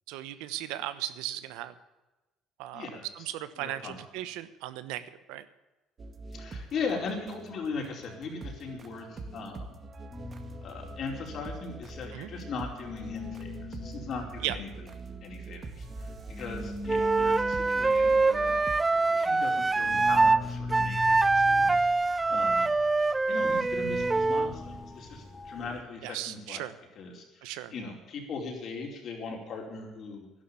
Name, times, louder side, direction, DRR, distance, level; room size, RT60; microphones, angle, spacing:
voice 1, 0.1-1.7 2.6-2.9 3.1-5.0 5.3-5.4 12.1-12.3 14.4-14.5 26.0-26.7 27.4-27.7, right 14 dB, 85° right, 13 dB, 1.1 m, -36 dB
voice 2, 2.7-3.3 3.6-4.0 6.3-9.7 10.6-14.7 15.2-18.6 19.1-21.9 22.3-22.7 23.3-26.6 27.0-30.3, left 4 dB, 50° left, 1 dB, 4.5 m, -39 dB
sound 1, 6.0-20.3, right 3 dB, 35° right, 1.8 m, -44 dB
sound 2, 10.1-12.5 12.7-25.8, left 2 dB, 15° left, 2.7 m, -41 dB
Wind instrument woodwind instrument, 16.9-20.4 20.7-24.5, right 3 dB, 15° right, 0.4 m, -24 dB
11.5 x 11.5 x 8.5 m, 1.1 s
cardioid pair, 110°, 0 cm